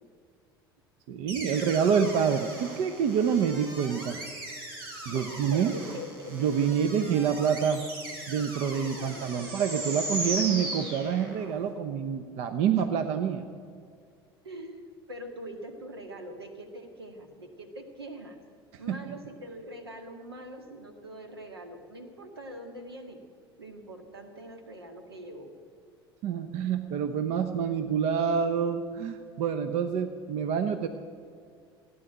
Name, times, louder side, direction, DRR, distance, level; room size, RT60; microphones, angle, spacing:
voice 1, 1.1-4.2 5.1-5.7 6.3-7.8 8.3-13.4 18.9-19.0 26.2-30.9, right 7 dB, 55° right, 9 dB, 0.9 m, -27 dB
sound 1, 1.3-11.6, right 2 dB, 70° right, 3.3 m, -38 dB
voice 2, 5.1-6.5 8.8-9.5 14.4-18.4 18.8-23.2 23.6-25.5, right 1 dB, 85° right, 5 dB, 1.8 m, -43 dB
16.0 x 9.7 x 9.1 m, 2.2 s
figure-of-eight pair, 70°, 13 cm